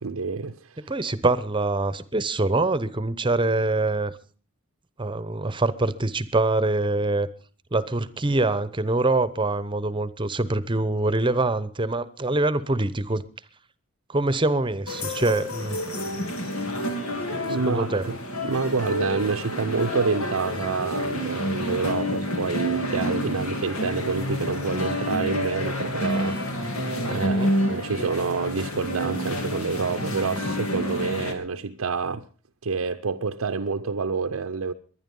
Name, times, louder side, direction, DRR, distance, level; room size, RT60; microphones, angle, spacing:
voice 1, 0.0-0.9 17.4-26.4 27.0-32.2 32.6-34.7, right 4 dB, 80° right, 0.7 m, -28 dB
voice 2, 0.9-4.1 5.0-7.3 7.7-13.2 14.1-15.8 17.5-18.1 27.1-27.5, right 2 dB, 25° right, 0.9 m, -24 dB
sound 1, 14.9-31.3, equal, 90° left, 3.2 m, -29 dB
22.5 x 10.0 x 5.4 m
head